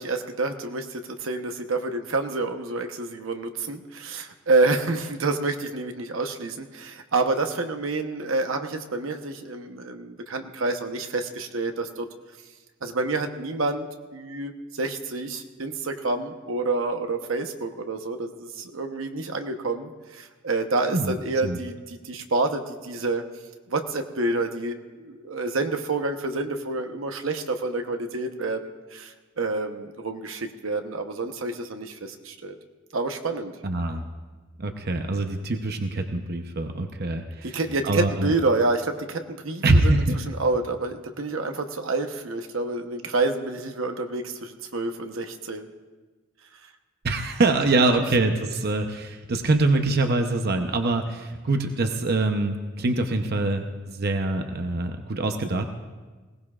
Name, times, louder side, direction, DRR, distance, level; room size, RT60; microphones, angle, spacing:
voice 1, 0.0-12.1 12.8-23.2 23.7-32.6 32.9-33.5 37.4-45.7, right 3 dB, 80° right, 5 dB, 1.0 m, -28 dB
voice 2, 33.6-34.0 34.6-37.6 37.8-38.3 39.6-40.2 47.0-55.6, right 2 dB, 55° right, 5 dB, 0.8 m, -24 dB
20.5 x 17.5 x 2.4 m, 1.3 s
head